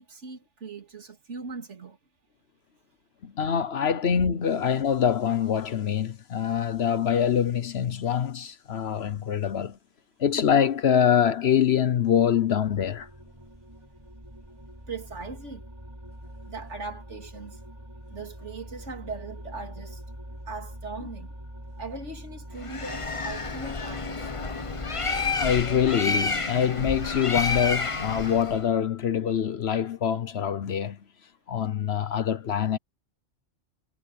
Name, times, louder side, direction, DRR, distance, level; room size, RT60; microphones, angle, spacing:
voice 1, 0.0-2.0 14.9-15.7 16.5-17.6 18.1-20.0 20.5-21.3 21.8-24.3, right 4 dB, 75° right, 3.1 m, -39 dB
voice 2, 3.2-9.8 10.2-13.1 25.4-31.0 31.5-32.8, left 8 dB, 65° left, 1.1 m, -24 dB
sound 1, 12.6-26.0, equal, 20° right, 6.2 m, -43 dB
Bird, 22.6-28.6, left 4 dB, 30° left, 1.0 m, -30 dB
omnidirectional pair, 1.2 m